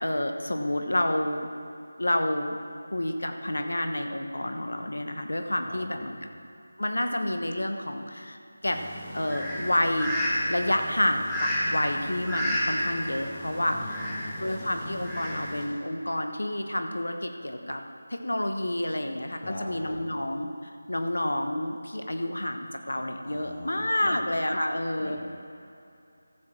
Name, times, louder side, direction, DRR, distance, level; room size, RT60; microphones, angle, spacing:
voice 1, 0.0-1.5 2.0-2.6 2.9-6.3 6.8-8.4 8.6-8.8 9.1-10.1 10.5-14.0 14.4-17.8 18.1-20.5 20.9-25.2, left 1 dB, 80° left, 5 dB, 1.1 m, -29 dB
voice 2, 5.6-6.2 13.7-14.8 19.4-20.2 23.2-24.2 25.0-25.2, left 1 dB, 45° left, -2 dB, 2.3 m, -41 dB
Fowl, 8.6-15.6, equal, ahead, 1.5 m, -32 dB
14.0 x 4.8 x 7.1 m, 2.6 s
figure-of-eight pair, 165°, 0 cm